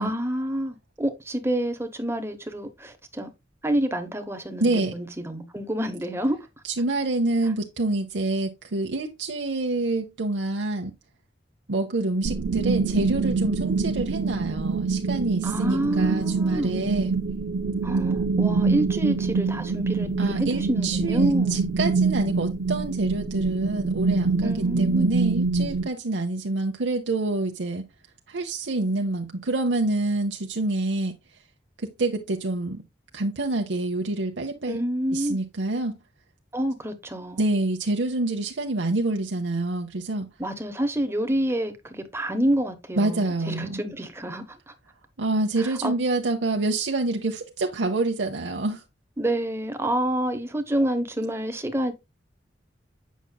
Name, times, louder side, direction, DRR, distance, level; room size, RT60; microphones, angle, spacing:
voice 1, 0.0-3.3 3.6-6.4 15.4-16.7 17.8-21.7 24.4-25.1 34.7-35.4 36.5-37.4 40.4-44.4 45.6-45.9 49.2-51.9, right 1 dB, 15° right, 1.0 m, -28 dB
voice 2, 4.6-4.9 6.6-10.9 11.7-17.1 20.2-27.9 28.3-31.1 31.8-32.8 33.1-34.8 35.1-36.0 37.4-40.3 43.0-43.8 45.2-48.8, right 2 dB, 85° right, 0.7 m, -27 dB
sound 1, 12.2-25.9, right 4 dB, 65° right, 0.4 m, -25 dB
8.1 x 6.1 x 2.2 m
head